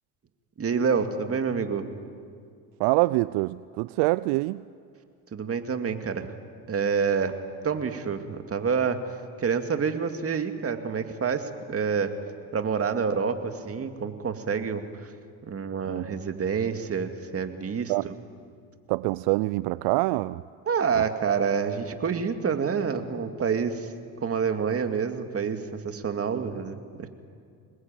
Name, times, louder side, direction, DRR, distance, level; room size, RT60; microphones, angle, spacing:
voice 1, 0.6-1.9 5.3-6.3 6.7-7.3 7.6-12.1 12.5-15.1 15.4-18.1 20.7-23.9 24.2-27.1, right 6 dB, 35° right, 7 dB, 2.3 m, -28 dB
voice 2, 2.8-4.6 15.9-16.1 17.9-18.1 18.9-20.4 21.0-21.1, right 21 dB, 75° right, 18 dB, 0.6 m, -25 dB
26.0 x 20.5 x 9.1 m, 2.3 s
supercardioid pair, 85°, 41 cm